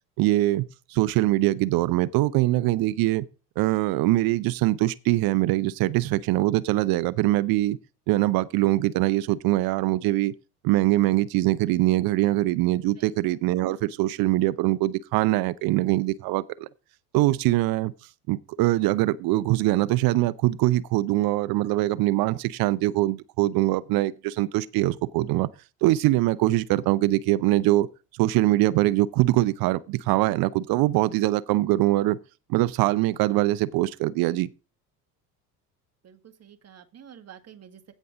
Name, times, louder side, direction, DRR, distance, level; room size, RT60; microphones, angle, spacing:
voice 1, 0.2-3.3 3.6-7.8 8.1-10.3 10.6-16.7 17.1-17.9 18.3-25.5 25.8-27.9 28.2-32.2 32.5-34.5, right 17 dB, 45° right, 0.7 m, -23 dB
voice 2, 36.0-37.9, right 8 dB, 30° right, 1.8 m, -49 dB
16.0 x 5.5 x 3.8 m
figure-of-eight pair, 60°, 49 cm